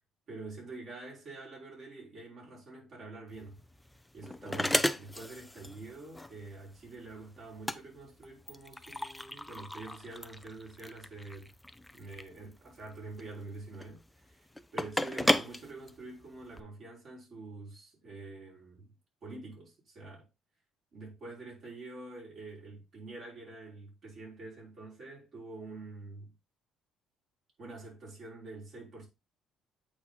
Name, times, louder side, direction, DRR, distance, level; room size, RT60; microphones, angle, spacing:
voice 1, 0.3-3.6 4.1-11.5 11.9-18.9 19.2-20.3 20.9-26.3 27.6-29.1, right 3 dB, 50° right, 5.5 m, -46 dB
sound 1, 3.3-16.6, left 1 dB, 5° left, 0.5 m, -35 dB
8.5 x 4.3 x 4.2 m
cardioid pair, 105°, 0 cm